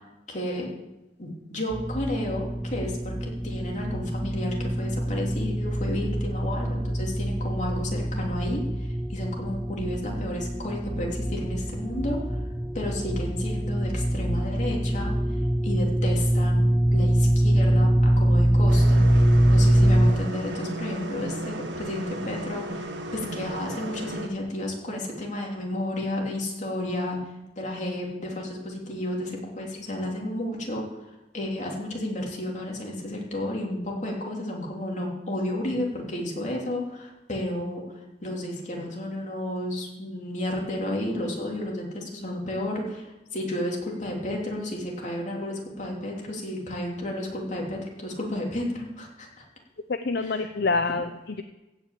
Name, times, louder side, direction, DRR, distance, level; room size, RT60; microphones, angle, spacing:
voice 1, 0.3-0.7 1.2-12.4 12.7-15.1 15.6-19.1 19.5-27.2 27.6-30.8 31.3-37.8 38.2-43.1 43.3-49.3 50.2-50.5, left 1 dB, 45° left, -1 dB, 3.2 m, -32 dB
sound 1, 1.7-20.1, right 1 dB, 5° right, 0.8 m, -24 dB
sound 2, 18.7-24.3, right 1 dB, 90° right, 1.6 m, -35 dB
voice 2, 49.9-51.4, left 3 dB, 65° left, 8 dB, 0.6 m, -27 dB
15.5 x 5.8 x 8.5 m, 0.99 s
head